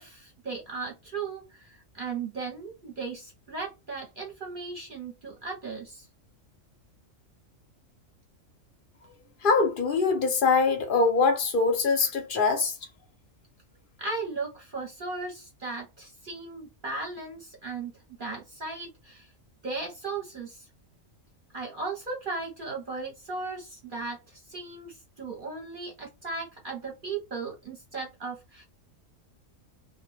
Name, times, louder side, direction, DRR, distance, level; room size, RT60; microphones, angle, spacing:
voice 1, 0.0-6.1 14.0-17.9 18.2-19.3 19.6-20.7 21.5-28.6, right 4 dB, 50° right, 0.8 m, -36 dB
voice 2, 9.4-12.8, left 4 dB, 55° left, 0.6 m, -23 dB
2.2 x 2.2 x 3.1 m
omnidirectional pair, 1.4 m